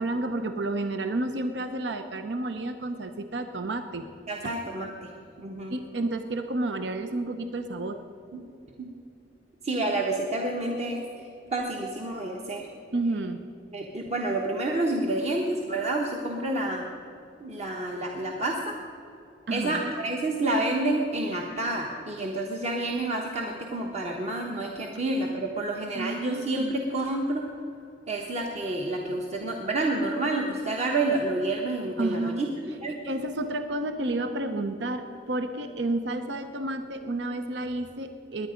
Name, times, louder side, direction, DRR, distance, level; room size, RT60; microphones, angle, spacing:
voice 1, 0.0-4.1 5.7-8.0 12.9-13.5 19.5-19.9 25.9-26.7 32.0-32.5 32.9-38.5, right 2 dB, 75° right, 8 dB, 0.7 m, -31 dB
voice 2, 4.3-5.1 5.4-5.7 8.3-8.4 8.8-8.9 9.6-12.7 13.7-16.8 17.4-18.8 19.5-27.4 28.1-32.5 32.8-32.9, right 2 dB, 40° right, 0 dB, 1.1 m, -29 dB
20.5 x 9.5 x 5.1 m, 2.7 s
head